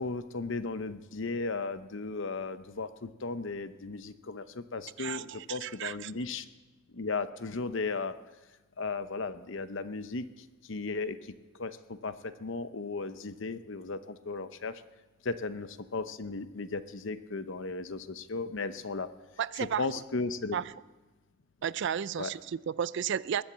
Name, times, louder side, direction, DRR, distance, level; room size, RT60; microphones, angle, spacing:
voice 1, 0.0-6.5 6.9-8.1 8.8-10.3 10.7-11.3 11.6-14.8 15.2-19.1 19.6-20.6 22.2-22.3, left 3 dB, 65° left, 12 dB, 0.8 m, -35 dB
voice 2, 5.0-6.1 19.4-19.8 20.5-20.6 21.6-23.4, right 8 dB, 60° right, 19 dB, 0.4 m, -33 dB
20.5 x 7.2 x 7.4 m, 1.2 s
head